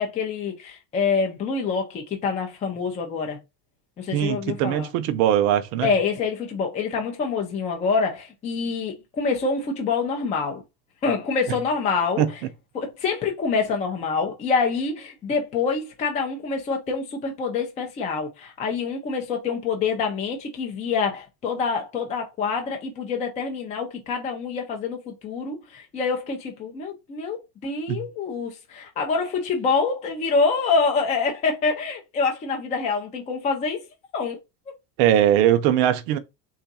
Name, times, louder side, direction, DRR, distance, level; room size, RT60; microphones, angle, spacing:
voice 1, 0.0-3.4 4.0-4.9 5.8-10.6 11.0-12.2 12.7-33.8 34.1-34.4, left 4 dB, 15° left, 0.4 m, -26 dB
voice 2, 4.1-5.9 12.2-12.3 27.9-28.1 35.0-36.2, right 11 dB, 55° right, 0.6 m, -20 dB
3.8 x 2.4 x 4.0 m
supercardioid pair, 160°, 46 cm